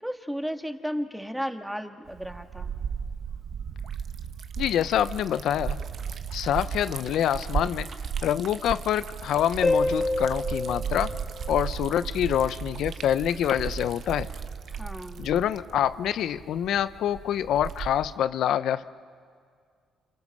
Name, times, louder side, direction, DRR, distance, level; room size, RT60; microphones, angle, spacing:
voice 1, 0.0-2.7 14.7-15.3, equal, 5° right, 5 dB, 1.8 m, -34 dB
Liquid, 2.1-18.2, right 7 dB, 60° right, 1.0 m, -35 dB
voice 2, 4.6-5.8 6.3-7.9 8.2-11.1 11.5-14.3 15.2-18.8, left 10 dB, 75° left, 14 dB, 0.7 m, -26 dB
Harp, 9.6-12.1 15.6-15.7, left 2 dB, 30° left, 2.1 m, -28 dB
29.0 x 27.5 x 6.6 m, 2.1 s
cardioid pair, 90°, 0 cm